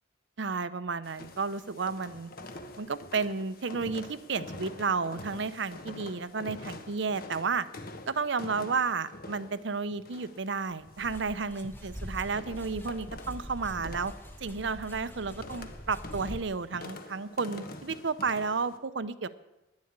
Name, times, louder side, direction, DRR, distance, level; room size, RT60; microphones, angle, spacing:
voice 1, 0.4-2.3 2.8-7.7 8.1-14.1 14.4-19.3, right 4 dB, 65° right, 14 dB, 0.7 m, -32 dB
sound 1, 1.0-18.8, left 2 dB, 50° left, 1.2 m, -46 dB
sound 2, 11.0-16.4, equal, 10° left, 0.9 m, -43 dB
10.5 x 10.5 x 8.7 m, 1.0 s
head